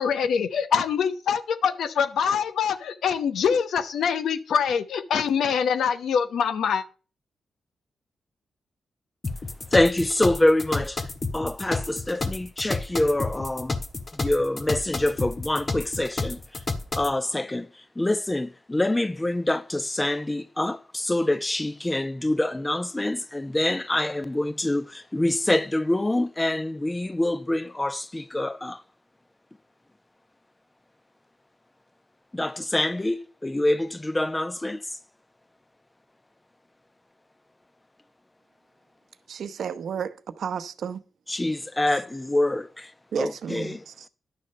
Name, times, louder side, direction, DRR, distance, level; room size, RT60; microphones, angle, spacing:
voice 1, 0.0-6.8, left 7 dB, 80° left, 0.9 m, -24 dB
sound 1, 9.2-17.1, left 3 dB, 45° left, 1.7 m, -30 dB
voice 2, 9.7-13.8 14.1-16.6 16.9-28.8 32.3-35.0 41.3-42.9 43.2-43.8, left 1 dB, 20° left, 0.9 m, -26 dB
voice 3, 39.3-41.0 43.1-43.9, right 7 dB, 75° right, 0.8 m, -32 dB
10.5 x 6.6 x 5.5 m
supercardioid pair, 45°, 0 cm